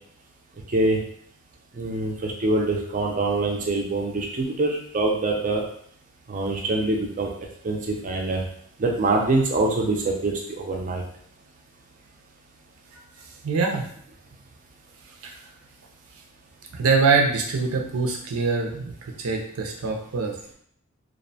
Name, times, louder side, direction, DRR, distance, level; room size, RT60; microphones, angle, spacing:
voice 1, 1.8-5.6 6.3-7.3 7.6-8.4 8.8-11.0, right 2 dB, 40° right, 1 dB, 0.4 m, -24 dB
voice 2, 13.4-13.9 15.2-15.3 16.7-18.9 19.2-20.3, right 4 dB, 90° right, 2 dB, 0.5 m, -23 dB
2.5 x 2.1 x 2.6 m, 0.64 s
head